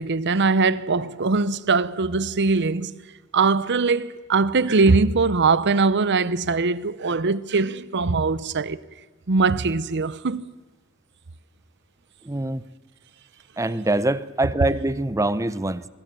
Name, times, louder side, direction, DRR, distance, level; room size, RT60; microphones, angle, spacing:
voice 1, 0.0-2.9 3.3-8.8 9.3-10.5, right 4 dB, 50° right, 0.8 m, -21 dB
voice 2, 12.2-12.6 13.6-15.9, right 2 dB, 15° right, 0.7 m, -24 dB
23.5 x 23.0 x 6.8 m
head